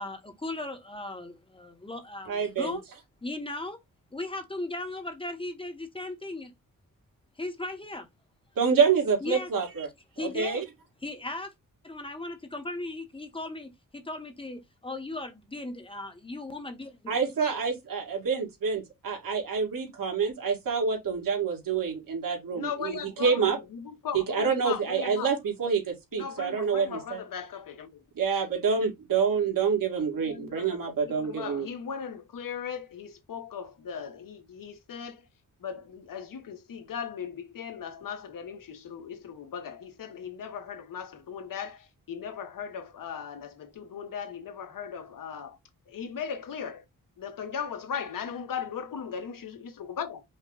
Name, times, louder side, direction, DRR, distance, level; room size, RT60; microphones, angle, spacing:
voice 1, 0.0-2.8 3.2-3.8 4.1-6.5 7.4-8.1 9.2-9.5 10.2-10.6 11.0-11.5 11.8-17.1 17.4-17.5, left 2 dB, 15° left, 0.9 m, -37 dB
voice 2, 2.3-2.8 8.6-9.9 10.2-10.6 17.1-23.6 24.1-27.2 28.1-31.7, right 6 dB, 75° right, 2.1 m, -27 dB
voice 3, 22.5-25.3 26.1-28.0 30.1-35.2 35.6-45.6 45.9-46.8 47.2-50.2, left 7 dB, 70° left, 1.0 m, -38 dB
5.4 x 2.2 x 3.8 m
wide cardioid pair, 115°, 34 cm